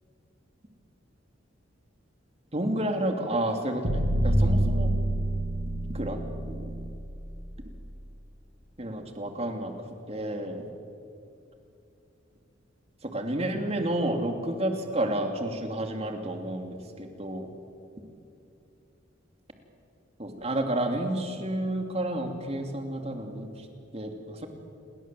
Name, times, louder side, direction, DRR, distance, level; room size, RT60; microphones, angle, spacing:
voice 1, 2.5-4.9 5.9-6.2 6.5-6.6 8.8-9.7 10.1-10.6 13.1-17.5 20.2-23.5 23.9-24.5, right 1 dB, 35° right, 4 dB, 2.9 m, -30 dB
sound 1, 3.8-7.9, right 1 dB, 65° right, 3.3 m, -27 dB
29.0 x 21.5 x 7.7 m, 2.7 s
head